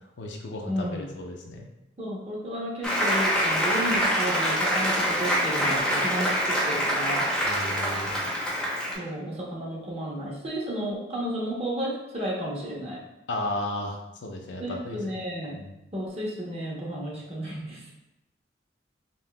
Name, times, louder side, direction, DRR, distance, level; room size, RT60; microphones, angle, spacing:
voice 1, 0.2-1.7 7.4-8.1 13.3-15.0 15.5-15.8, left 1 dB, 70° left, 2 dB, 0.5 m, -34 dB
voice 2, 0.7-1.1 2.0-7.3 9.0-13.0 14.6-15.6 15.9-17.9, equal, 30° right, -4 dB, 0.9 m, -32 dB
Applause, 2.8-8.9, equal, 5° left, 0.7 m, -25 dB
5.3 x 2.7 x 2.3 m, 0.93 s
head